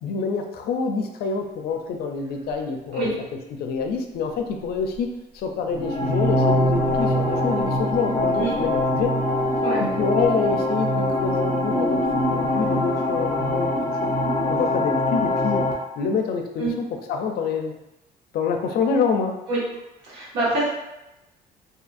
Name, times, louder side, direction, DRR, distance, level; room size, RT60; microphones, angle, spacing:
voice 1, 0.0-3.1 3.5-9.1 9.8-12.0 12.3-15.7 16.0-17.7 18.3-19.4, left 5 dB, 65° left, 4 dB, 0.4 m, -27 dB
sound 1, 2.5-2.6 4.3-5.0 5.4-10.9 11.7-13.0, left 1 dB, 15° right, 0.6 m, -38 dB
sound 2, 5.7-15.7, left 1 dB, 25° left, 0.6 m, -23 dB
voice 2, 20.0-20.7, right 3 dB, 85° right, -6 dB, 1.1 m, -25 dB
2.6 x 2.4 x 2.5 m, 0.93 s
cardioid pair, 110°, 17 cm